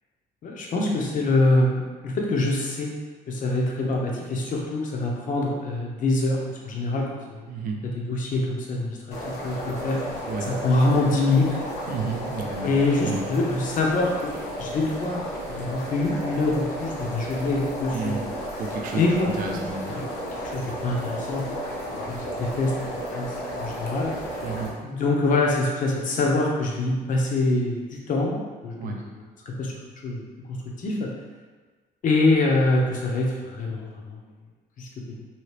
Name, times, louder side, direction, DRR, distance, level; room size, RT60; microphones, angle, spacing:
voice 1, 0.4-2.9 3.3-7.5 7.8-9.0 9.2-10.0 10.4-11.5 12.6-18.2 19.0-20.0 20.4-21.5 22.1-22.7 23.1-24.1 24.8-28.4 28.6-29.7 30.0-30.2 30.5-31.1 32.0-34.2 34.8-34.9 35.1-35.2, left 2 dB, 50° left, -1 dB, 0.8 m, -25 dB
voice 2, 7.5-7.8 10.3-10.5 11.9-12.7 13.0-13.3 17.9-18.3 18.6-19.0 19.4-20.0 24.4-24.8 28.8-29.0, right 4 dB, 55° right, 2 dB, 0.6 m, -31 dB
sound 1, 9.1-24.7, equal, 85° left, 1.0 m, -33 dB
2.9 x 2.8 x 3.2 m, 1.4 s
cardioid pair, 110°, 17 cm